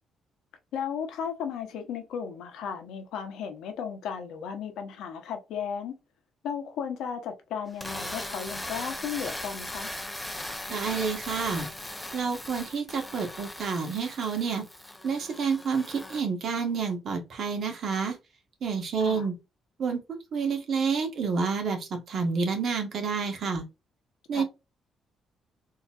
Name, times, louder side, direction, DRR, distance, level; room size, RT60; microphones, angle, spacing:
voice 1, 0.7-5.9 6.4-9.9 19.0-19.3 24.3-24.4, left 7 dB, 85° left, 0.9 m, -35 dB
sound 1, 7.7-16.2, left 1 dB, 10° left, 0.6 m, -38 dB
voice 2, 10.7-11.7 12.1-14.6 15.0-18.2 18.6-19.3 19.8-23.6 24.3-24.4, right 5 dB, 60° right, 1.3 m, -29 dB
3.8 x 2.8 x 2.4 m
cardioid pair, 90°, 0 cm